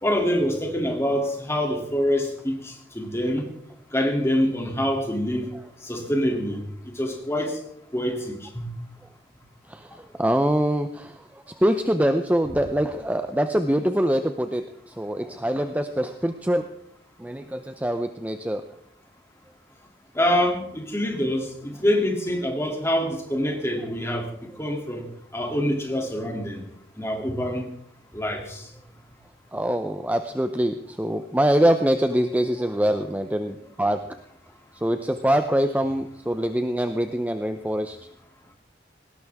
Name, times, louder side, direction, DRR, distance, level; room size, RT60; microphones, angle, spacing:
voice 1, 0.0-3.5 3.9-5.5 5.8-6.6 6.9-7.6 7.9-8.7 20.1-25.0 25.3-26.6 27.0-27.7 28.1-28.6, equal, 15° left, 2 dB, 2.7 m, -25 dB
voice 2, 9.7-16.6 17.2-18.6 29.5-34.0 34.8-38.0, right 1 dB, 10° right, 8 dB, 0.6 m, -24 dB
19.0 x 17.5 x 3.6 m, 0.69 s
head